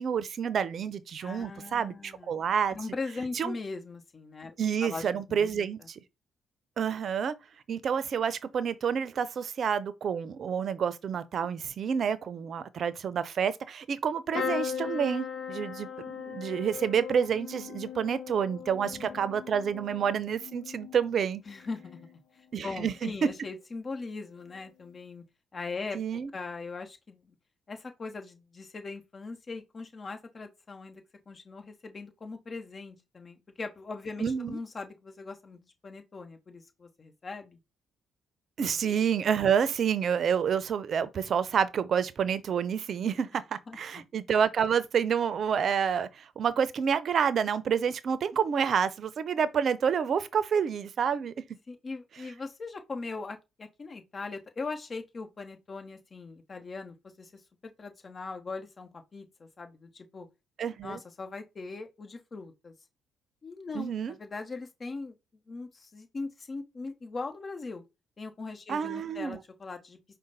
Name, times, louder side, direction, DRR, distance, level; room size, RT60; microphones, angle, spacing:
voice 1, 0.0-2.8 3.3-3.5 4.6-5.8 6.8-7.3 7.7-21.4 22.5-23.1 25.9-26.3 34.2-34.6 38.6-51.3 60.6-61.0 63.7-64.1 68.7-69.4, right 7 dB, 60° right, 0.5 m, -28 dB
voice 2, 1.2-4.6 4.8-5.6 18.8-19.2 21.4-22.2 22.6-25.2 25.5-27.4 27.7-37.6 38.6-38.8 43.7-44.0 51.7-57.4 57.8-60.3 60.8-62.7 63.4-65.1 65.5-67.8 68.2-70.0, left 3 dB, 40° left, 1.1 m, -40 dB
sound 1, 14.3-22.2 22.6-23.2 24.4-24.6 24.9-25.0, left 7 dB, 65° left, 0.8 m, -39 dB
5.0 x 2.1 x 4.0 m
hypercardioid pair, 55°, 0 cm